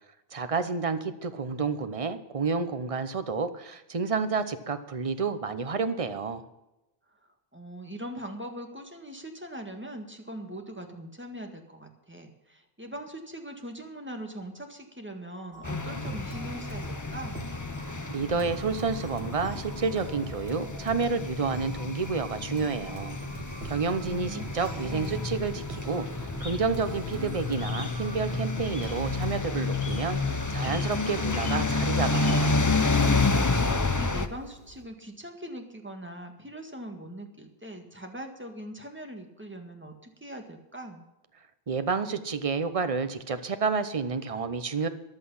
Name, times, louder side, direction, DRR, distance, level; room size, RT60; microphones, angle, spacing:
voice 1, 0.3-6.4 18.1-23.2 23.6-32.6 41.7-44.9, right 5 dB, 35° right, 10 dB, 0.9 m, -30 dB
voice 2, 7.5-17.4 23.9-25.4 33.5-41.1, right 1 dB, 10° right, 4 dB, 1.8 m, -41 dB
sound 1, 15.5-34.1, right 3 dB, 75° right, 2.3 m, -44 dB
sound 2, 15.6-34.3, left 3 dB, 20° left, 0.7 m, -30 dB
sound 3, 26.4-34.8, left 2 dB, 60° left, 2.8 m, -48 dB
14.5 x 11.0 x 5.6 m, 0.95 s
omnidirectional pair, 1.1 m